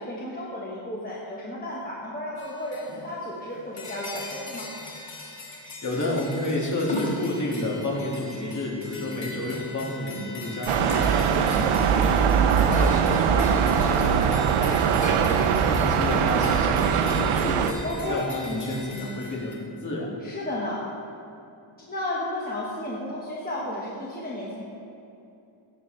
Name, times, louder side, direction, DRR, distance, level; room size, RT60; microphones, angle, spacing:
voice 1, 0.0-4.7 17.8-18.2 20.2-20.9 21.8-24.6, left 1 dB, 20° left, -6 dB, 1.4 m, -33 dB
sound 1, 2.4-3.1 3.5-19.5, left 2 dB, 60° left, 2.0 m, -39 dB
voice 2, 5.8-15.4 15.7-17.8 18.1-20.1, left 1 dB, 35° left, -3 dB, 2.1 m, -31 dB
sound 2, 10.7-17.7, right 7 dB, 90° right, 0.7 m, -21 dB
16.0 x 7.6 x 3.3 m, 2.6 s
wide cardioid pair, 125°, 50 cm